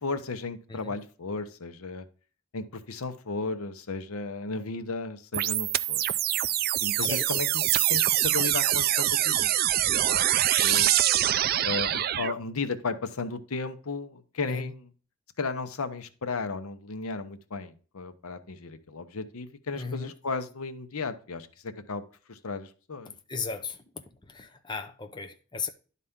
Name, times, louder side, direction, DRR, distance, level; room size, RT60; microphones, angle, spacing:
voice 1, 0.0-2.1 2.5-6.0 6.8-7.6 7.9-10.9 11.6-14.9 15.4-22.0 22.3-23.1, left 4 dB, 85° left, 0.8 m, -35 dB
sound 1, 5.3-12.3, right 13 dB, 45° right, 0.3 m, -24 dB
voice 2, 19.8-20.1 23.3-23.8 24.3-25.7, left 5 dB, 20° left, 0.5 m, -35 dB
11.0 x 4.2 x 3.6 m
head